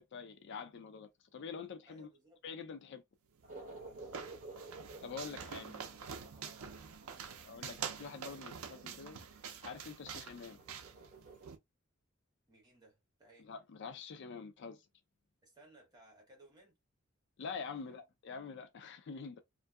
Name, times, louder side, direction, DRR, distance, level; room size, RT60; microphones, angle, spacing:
voice 1, 0.0-2.1 2.4-3.0 5.0-5.8 7.4-9.2 9.6-10.6 13.5-14.8 17.4-19.4, left 5 dB, 55° left, 0.4 m, -46 dB
voice 2, 1.9-2.5 4.1-4.5 5.0-5.6 5.9-7.5 10.4-10.6 12.5-13.5 15.4-16.8 17.7-18.0, right 1 dB, 20° right, 1.4 m, -62 dB
sound 1, 3.4-11.5, right 2 dB, 40° right, 0.9 m, -54 dB
sound 2, 3.4-11.6, right 7 dB, 75° right, 0.5 m, -47 dB
2.6 x 2.5 x 2.2 m
head